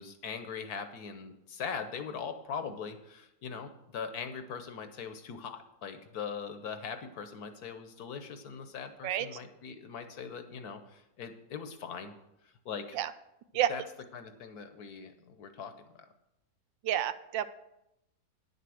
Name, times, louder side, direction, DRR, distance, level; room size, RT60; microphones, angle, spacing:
voice 1, 0.0-12.1 12.4-13.0 13.7-13.8 14.1-16.1, left 6 dB, 60° left, 8 dB, 1.2 m, -41 dB
voice 2, 16.8-17.5, right 11 dB, 85° right, 13 dB, 1.3 m, -29 dB
10.0 x 6.8 x 6.3 m, 0.85 s
omnidirectional pair, 2.0 m